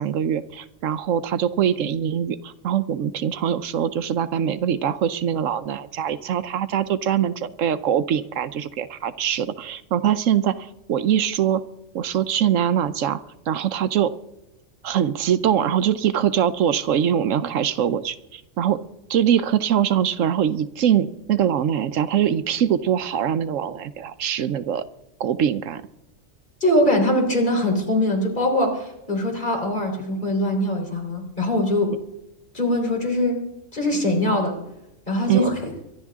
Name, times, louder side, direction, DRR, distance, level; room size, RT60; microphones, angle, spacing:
voice 1, 0.0-11.6 11.9-13.2 13.5-14.1 14.8-18.8 19.1-24.8 25.2-25.8 35.3-35.5, right 9 dB, 75° right, 13 dB, 1.0 m, -23 dB
voice 2, 26.6-31.9 32.5-33.4 33.7-34.5 35.1-35.6, left 1 dB, 35° left, 1 dB, 4.0 m, -22 dB
24.0 x 12.0 x 3.6 m, 0.90 s
omnidirectional pair, 1.3 m